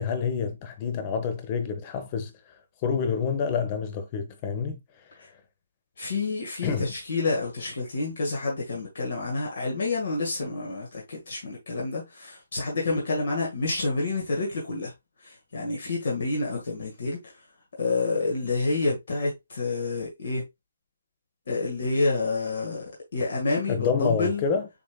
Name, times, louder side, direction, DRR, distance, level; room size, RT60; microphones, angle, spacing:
voice 1, 0.0-2.3 2.8-4.8 6.6-6.9 23.7-24.7, left 6 dB, 25° left, 0.9 m, -27 dB
voice 2, 6.0-14.9 15.2-17.4 17.8-20.4 21.5-24.4, left 3 dB, 55° left, 1.6 m, -28 dB
7.0 x 3.3 x 2.3 m
figure-of-eight pair, 145°, 0 cm